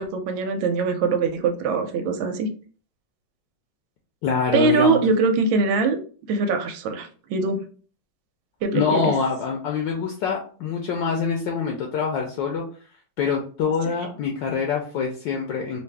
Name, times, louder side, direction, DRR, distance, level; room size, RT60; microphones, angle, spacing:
voice 1, 0.0-2.5 4.5-6.0 6.3-7.6 8.6-9.1, right 4 dB, 90° right, 7 dB, 1.4 m, -22 dB
voice 2, 4.2-5.0 8.7-12.6 13.2-15.8, left 5 dB, 70° left, 1 dB, 1.2 m, -25 dB
3.5 x 2.5 x 3.3 m, 0.41 s
omnidirectional pair, 2.2 m